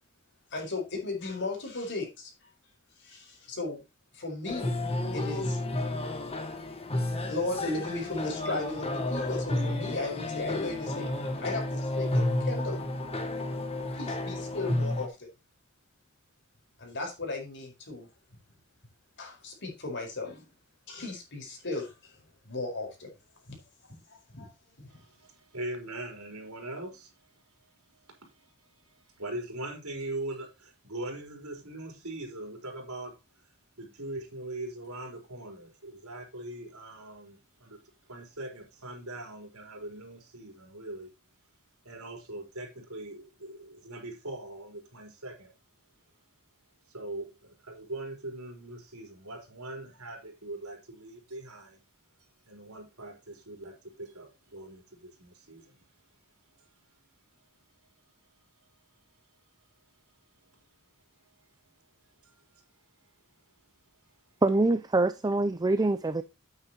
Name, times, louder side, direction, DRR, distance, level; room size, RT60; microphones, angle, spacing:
voice 1, 0.5-2.3 3.0-3.8 4.1-4.7 5.1-5.6 6.3-6.5 7.2-11.1 11.4-12.8 13.9-15.3 16.8-18.1 19.2-20.5 20.9-22.1 22.4-23.1 23.5-23.6 23.8-24.5 24.8-24.9, left 2 dB, 55° left, 4.8 m, -36 dB
sound 1, 4.5-15.1, left 1 dB, 30° left, 1.5 m, -31 dB
voice 2, 24.9-33.5 33.8-37.8 38.1-41.1 41.8-45.5 46.9-51.8 52.5-55.9 56.5-56.9 60.4-60.6 61.2-61.7 62.0-62.6 63.0-63.1, right 1 dB, 75° right, 4.3 m, -42 dB
voice 3, 64.4-66.2, right 2 dB, 20° right, 0.5 m, -25 dB
9.7 x 9.1 x 3.0 m
head